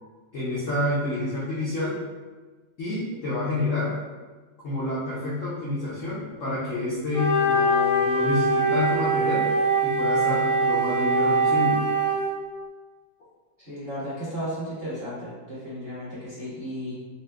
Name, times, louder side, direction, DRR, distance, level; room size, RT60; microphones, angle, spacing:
voice 1, 0.3-2.0 2.8-3.9 4.6-9.5 9.8-11.8, left 2 dB, 60° left, -9 dB, 0.8 m, -28 dB
Wind instrument woodwind instrument, 7.1-12.3, right 2 dB, 5° left, 0.7 m, -22 dB
voice 2, 13.6-16.9, equal, 35° right, -12 dB, 1.2 m, -34 dB
4.2 x 2.4 x 2.2 m, 1.3 s
omnidirectional pair, 2.1 m